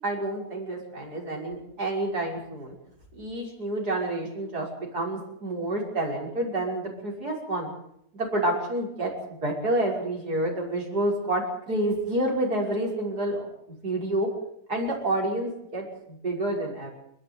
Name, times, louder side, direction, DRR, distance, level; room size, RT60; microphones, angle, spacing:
voice 1, 0.0-2.7 3.1-4.7 4.9-7.7 8.1-13.5 13.8-14.3 14.7-16.9, right 1 dB, 75° right, -1 dB, 6.5 m, -29 dB
28.5 x 11.5 x 9.5 m, 0.74 s
omnidirectional pair, 1.7 m